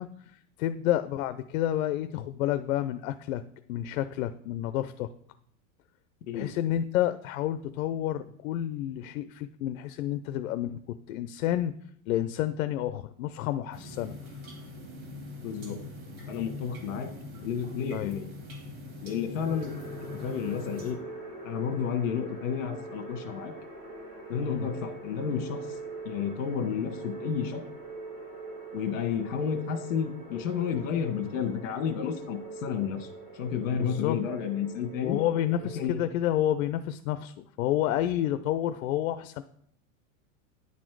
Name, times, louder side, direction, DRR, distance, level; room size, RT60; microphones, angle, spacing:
voice 1, 0.0-3.4 3.7-5.1 6.3-11.7 12.1-14.2 17.9-18.2 24.5-24.7 33.7-34.2 35.0-39.4, left 12 dB, 80° left, 11 dB, 0.5 m, -30 dB
sound 1, 13.7-20.9, left 2 dB, 80° right, 2.9 m, -43 dB
voice 2, 15.4-15.8 16.3-18.3 19.0-19.7 20.1-21.0 21.4-23.5 24.3-25.8 26.0-27.6 28.7-35.2 35.7-36.0, left 7 dB, 60° left, 6 dB, 1.4 m, -31 dB
sound 2, 19.4-35.9, right 3 dB, 40° right, 3.7 m, -43 dB
9.5 x 4.2 x 4.6 m, 0.68 s
supercardioid pair, 180°, 42 cm